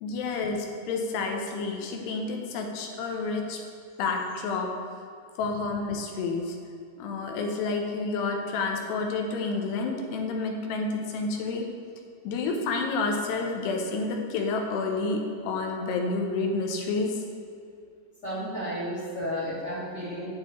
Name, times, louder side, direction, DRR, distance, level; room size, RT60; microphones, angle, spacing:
voice 1, 0.0-3.6 4.0-4.7 5.4-6.6 7.0-11.7 12.2-17.2, left 3 dB, 80° left, 2 dB, 2.8 m, -29 dB
voice 2, 18.2-20.4, equal, 45° left, -9 dB, 1.5 m, -32 dB
8.5 x 7.5 x 3.1 m, 2.4 s
omnidirectional pair, 5.0 m